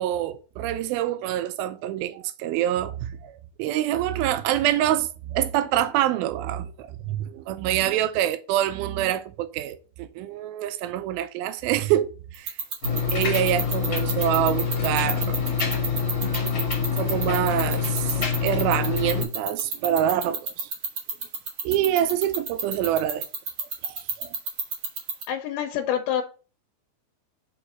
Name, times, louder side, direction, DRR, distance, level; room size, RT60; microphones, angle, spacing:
voice 1, 0.0-12.5 13.1-15.4 15.7-15.8 17.0-18.2 18.4-20.7 21.6-23.2 23.8-24.3, right 12 dB, 85° right, 2.4 m, -26 dB
sound 1, 12.3-25.2, right 6 dB, 60° right, 1.4 m, -28 dB
sound 2, 12.8-19.2, left 6 dB, 45° left, 1.7 m, -26 dB
voice 2, 25.3-26.2, left 9 dB, 90° left, 2.5 m, -26 dB
5.3 x 4.9 x 4.2 m
omnidirectional pair, 4.3 m